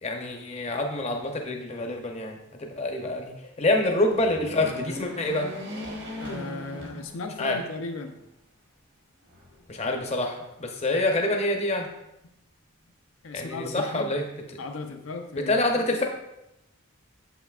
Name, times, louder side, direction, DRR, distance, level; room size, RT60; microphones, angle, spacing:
voice 1, 0.0-5.5 7.4-7.6 9.7-11.9 13.3-14.2 15.4-16.0, left 2 dB, 30° left, 2 dB, 0.6 m, -26 dB
sound 1, 4.1-7.6 8.1-8.2 9.3-10.1, left 1 dB, 55° right, 1.2 m, -39 dB
voice 2, 6.2-8.2 13.2-14.2 14.6-15.8, left 3 dB, 70° left, 5 dB, 0.5 m, -36 dB
7.0 x 5.6 x 2.4 m, 0.87 s
head